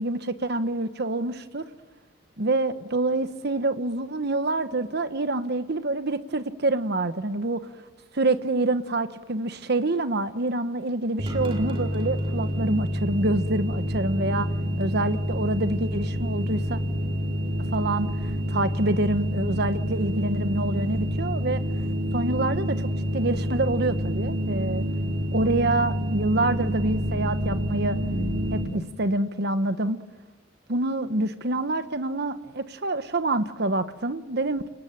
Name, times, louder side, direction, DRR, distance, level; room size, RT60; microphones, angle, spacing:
voice 1, 0.0-1.6 2.4-7.7 8.1-14.5 14.8-16.8 17.7-21.6 22.1-22.9 23.1-24.9 25.3-28.0 28.5-30.0 30.7-34.7, right 2 dB, 55° right, 11 dB, 1.2 m, -26 dB
sound 1, 11.2-28.6, equal, 30° right, 4.3 m, -28 dB
30.0 x 19.0 x 8.9 m, 1.3 s
head